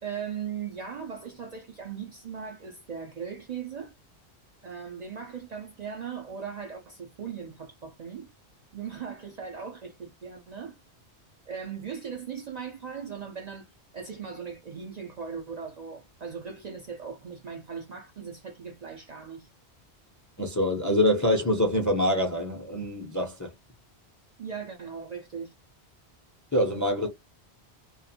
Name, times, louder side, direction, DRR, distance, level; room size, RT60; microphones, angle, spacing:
voice 1, 0.0-3.9 4.6-8.3 8.7-10.8 11.5-19.5 24.4-25.5, right 6 dB, 50° right, 0.5 m, -38 dB
voice 2, 20.4-23.5 26.5-27.1, left 1 dB, 25° left, 0.5 m, -25 dB
2.4 x 2.4 x 2.7 m
omnidirectional pair, 1.1 m